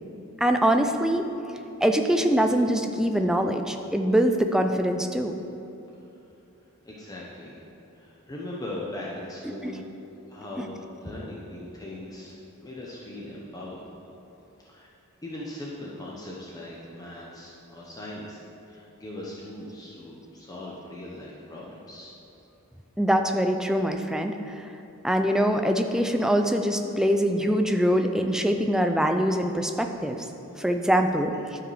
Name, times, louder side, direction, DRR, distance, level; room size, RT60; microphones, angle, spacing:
voice 1, 0.4-1.2 1.8-5.3 10.6-10.7 23.0-24.3 25.0-30.2 30.6-31.3, equal, 5° right, 5 dB, 0.4 m, -23 dB
voice 2, 6.8-7.6 7.9-9.8 10.3-12.4 12.6-13.8 14.6-14.9 15.2-18.4 18.7-22.1, left 1 dB, 15° left, -5 dB, 0.8 m, -39 dB
12.0 x 5.0 x 4.8 m, 2.8 s
head